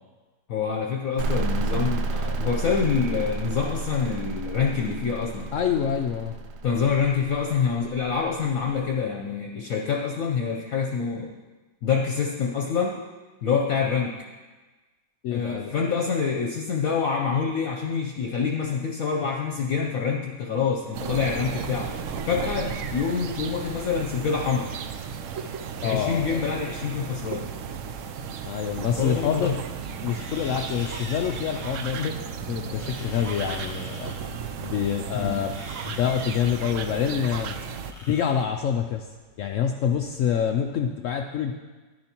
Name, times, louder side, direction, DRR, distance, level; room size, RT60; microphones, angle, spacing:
voice 1, 0.5-5.5 6.6-11.3 11.8-13.0 13.4-14.2 15.3-21.9 22.2-24.7 25.8-27.5 29.0-29.6 32.7-32.9 35.1-35.4, left 6 dB, 60° left, 1 dB, 1.0 m, -26 dB
sound 1, 1.2-8.7, right 3 dB, 90° right, 1.3 m, -31 dB
voice 2, 5.5-6.4 15.2-15.7 25.8-26.4 28.4-29.5 30.0-32.2 32.5-34.1 34.6-35.5 35.9-37.6 38.1-39.1 39.4-41.5, left 8 dB, 85° left, 3 dB, 0.6 m, -26 dB
sound 2, 20.9-37.9, right 6 dB, 75° right, 0.7 m, -34 dB
sound 3, 29.0-40.8, equal, ahead, 1.4 m, -46 dB
10.5 x 10.5 x 2.9 m, 1.3 s
omnidirectional pair, 1.9 m